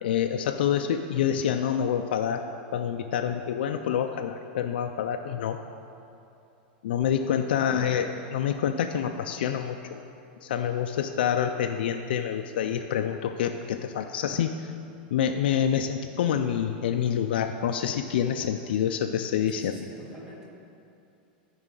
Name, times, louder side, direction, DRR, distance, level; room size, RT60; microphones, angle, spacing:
voice 1, 0.0-2.4 2.7-5.6 6.8-10.0 10.4-14.7 15.1-19.7, left 9 dB, 80° left, 5 dB, 0.4 m, -27 dB
voice 2, 7.5-8.0 19.5-20.5, right 1 dB, 10° right, -4 dB, 1.6 m, -45 dB
13.0 x 4.9 x 3.8 m, 2.7 s
supercardioid pair, 145°, 5 cm